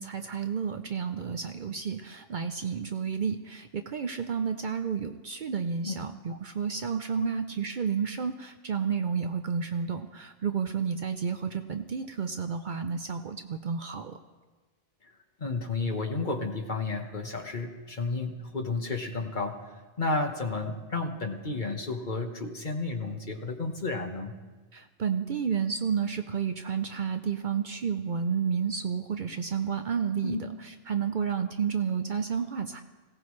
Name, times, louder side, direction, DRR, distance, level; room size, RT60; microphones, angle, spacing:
voice 1, 0.0-14.2 24.7-30.4 30.9-32.8, right 6 dB, 55° right, 7 dB, 0.7 m, -31 dB
voice 2, 15.4-19.6 20.0-24.3 30.2-30.4, left 3 dB, 45° left, 4 dB, 1.4 m, -32 dB
21.5 x 17.0 x 3.2 m, 1.3 s
omnidirectional pair, 1.1 m